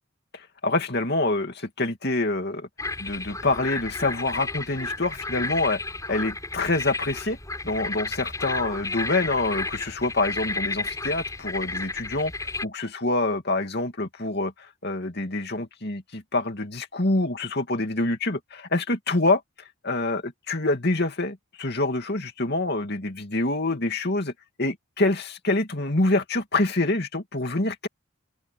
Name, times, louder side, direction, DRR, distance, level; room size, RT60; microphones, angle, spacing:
voice 1, 0.3-2.7 3.0-5.8 6.1-7.4 7.6-14.5 14.8-19.4 19.8-24.3 24.6-27.9, left 2 dB, 50° left, 2.7 m, -26 dB
sound 1, 2.8-12.7, left 3 dB, 15° left, 7.2 m, -32 dB
open air
head